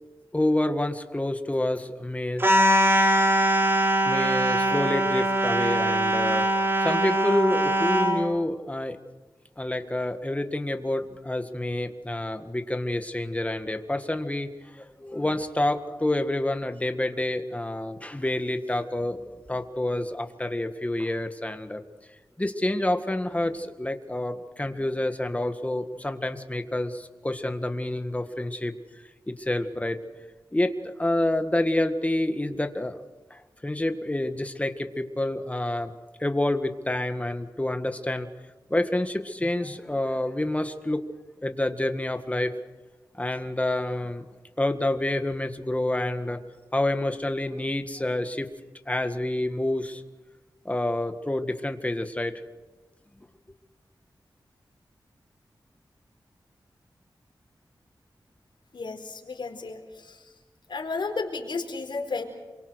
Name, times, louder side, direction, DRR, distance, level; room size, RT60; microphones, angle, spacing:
voice 1, 0.3-2.4 4.0-6.5 6.8-9.0 9.6-14.5 14.8-21.8 22.4-28.7 29.3-30.0 30.5-33.0 33.3-35.9 36.2-38.3 38.7-41.0 41.4-42.5 43.1-44.2 44.6-46.4 46.7-48.5 48.9-50.0 50.7-52.4, left 1 dB, 15° left, 7 dB, 1.8 m, -28 dB
sound 1, 2.4-8.2, right 1 dB, 30° right, 4.2 m, -22 dB
voice 2, 58.7-59.8 60.0-60.2 60.7-62.2, left 4 dB, 75° left, 3 dB, 4.5 m, -32 dB
28.0 x 24.0 x 6.5 m, 1.2 s
wide cardioid pair, 75°, 8 cm